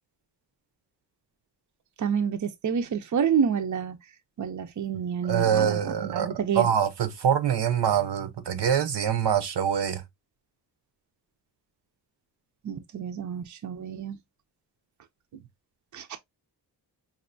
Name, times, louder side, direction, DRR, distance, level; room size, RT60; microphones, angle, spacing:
voice 1, 2.0-4.0 4.4-6.7 12.6-14.2 15.9-16.2, right 7 dB, 45° right, 0.6 m, -28 dB
voice 2, 5.2-10.0, right 8 dB, 80° right, 0.8 m, -25 dB
5.3 x 2.6 x 2.6 m
wide cardioid pair, 140°, 41 cm